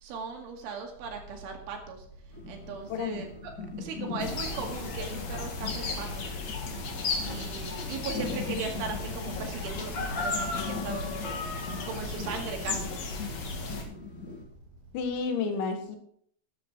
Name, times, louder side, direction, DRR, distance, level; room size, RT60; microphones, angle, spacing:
voice 1, 0.0-2.1 2.5-3.5 3.8-6.3 7.3-11.4 11.9-13.0, right 5 dB, 75° right, 2 dB, 4.6 m, -38 dB
sound 1, 1.0-15.2, equal, 5° left, 6.2 m, -54 dB
sound 2, 2.3-14.4, left 4 dB, 20° left, 3.1 m, -41 dB
voice 2, 2.9-3.3 14.9-16.0, left 5 dB, 70° left, 6 dB, 3.7 m, -31 dB
sound 3, 4.2-13.8, left 3 dB, 50° left, 2.2 m, -34 dB
14.0 x 10.0 x 4.4 m, 0.64 s
omnidirectional pair, 5.6 m